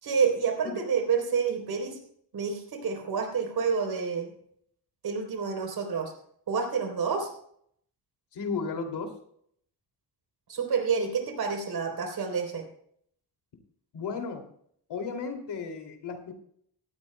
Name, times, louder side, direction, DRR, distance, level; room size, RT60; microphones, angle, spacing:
voice 1, 0.0-2.0 2.3-4.3 5.0-6.1 6.5-7.3 10.5-12.7, right 6 dB, 60° right, 4 dB, 3.6 m, -28 dB
voice 2, 8.3-9.2 13.9-14.4 14.9-16.3, left 5 dB, 75° left, 5 dB, 2.7 m, -34 dB
18.0 x 13.5 x 2.2 m, 0.65 s
cardioid pair, 135°, 41 cm